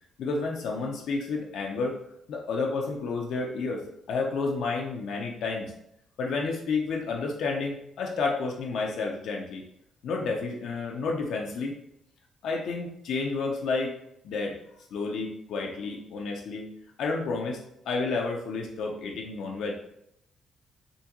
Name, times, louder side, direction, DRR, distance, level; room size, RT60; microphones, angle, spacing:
voice 1, 0.2-2.0 2.3-5.7 6.2-9.6 10.0-11.7 12.4-14.0 14.2-14.6 14.9-16.7 17.0-19.7, left 4 dB, 75° left, 0 dB, 0.5 m, -30 dB
3.6 x 2.2 x 2.8 m, 0.76 s
cardioid pair, 90°, 0 cm